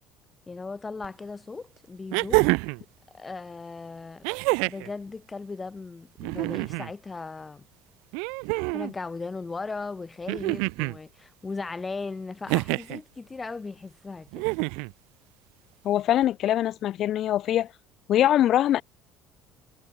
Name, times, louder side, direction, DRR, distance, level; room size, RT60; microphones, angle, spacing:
voice 1, 0.5-2.5 3.1-4.2 4.6-7.6 8.7-14.5, left 4 dB, 15° left, 7.1 m, -37 dB
sound 1, 1.0-1.1 2.1-2.8 4.2-4.9 6.2-6.9 8.1-8.9 10.3-11.0 12.5-13.0 14.3-14.9 16.2-16.3, right 33 dB, 85° right, 0.5 m, -27 dB
voice 2, 15.8-17.7 18.1-18.8, left 12 dB, 45° left, 1.0 m, -23 dB
cardioid pair, 155°, 0 cm